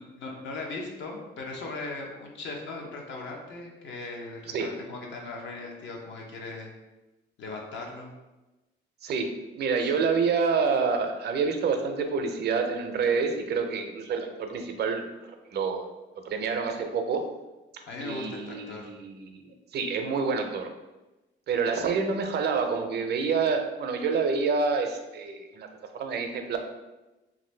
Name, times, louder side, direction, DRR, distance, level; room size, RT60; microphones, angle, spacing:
voice 1, 0.0-6.7 7.4-8.1 17.9-18.9, left 3 dB, 70° left, 0 dB, 0.7 m, -38 dB
voice 2, 9.6-15.0 15.5-15.9 16.3-17.2 18.0-20.7 21.5-25.7 25.9-26.6, right 5 dB, 55° right, 5 dB, 0.5 m, -27 dB
2.6 x 2.5 x 3.2 m, 1.1 s
cardioid pair, 90°, 20 cm